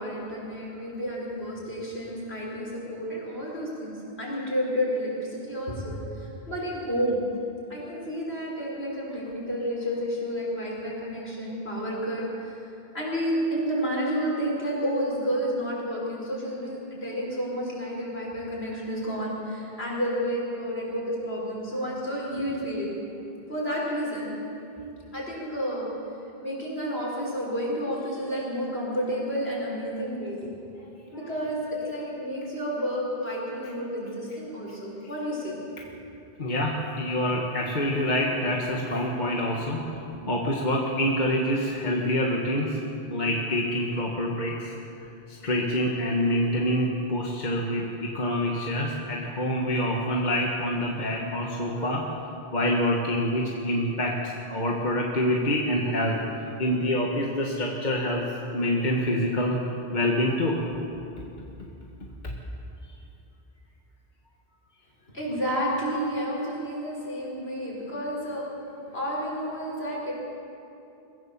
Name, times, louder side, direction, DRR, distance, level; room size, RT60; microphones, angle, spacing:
voice 1, 0.0-3.9 4.2-7.2 7.7-12.7 12.9-22.9 23.5-24.4 25.1-25.9 26.4-30.4 31.1-31.6 31.8-35.5 65.1-68.4 68.9-70.1, equal, 75° left, -5 dB, 6.1 m, -30 dB
voice 2, 36.4-40.0 40.3-42.8 43.1-52.0 52.5-56.2 56.6-58.3 58.5-59.6 59.9-60.6, left 1 dB, 45° left, -2 dB, 1.8 m, -26 dB
23.5 x 15.0 x 7.4 m, 2.8 s
omnidirectional pair, 1.1 m